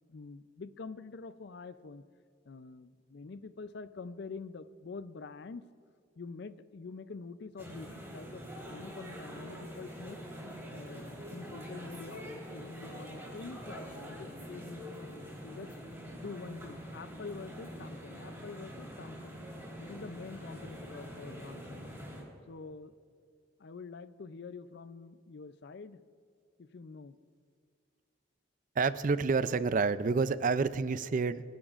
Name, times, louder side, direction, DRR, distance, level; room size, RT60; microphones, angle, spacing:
voice 1, 0.0-2.0 2.5-5.7 6.2-10.2 10.7-15.8 16.2-19.3 19.8-21.9 22.5-22.9 23.6-26.0 26.6-27.2, left 4 dB, 55° left, 14 dB, 0.4 m, -46 dB
sound 1, 7.6-22.2, equal, 15° right, 3.7 m, -45 dB
voice 2, 28.8-31.4, right 4 dB, 40° right, 14 dB, 0.4 m, -28 dB
26.5 x 10.5 x 2.5 m, 2.2 s
head